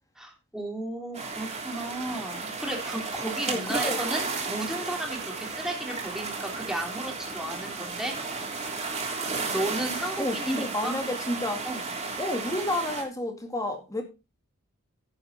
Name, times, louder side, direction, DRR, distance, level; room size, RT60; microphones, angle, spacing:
voice 1, 0.2-8.1 9.4-11.0 11.6-11.9, right 1 dB, ahead, 3.1 m, -34 dB
sound 1, 1.1-13.0, right 4 dB, 30° right, 3.2 m, -33 dB
voice 2, 3.5-4.0 10.2-11.7 12.2-14.0, left 1 dB, 15° left, 2.4 m, -30 dB
10.5 x 8.7 x 4.2 m
head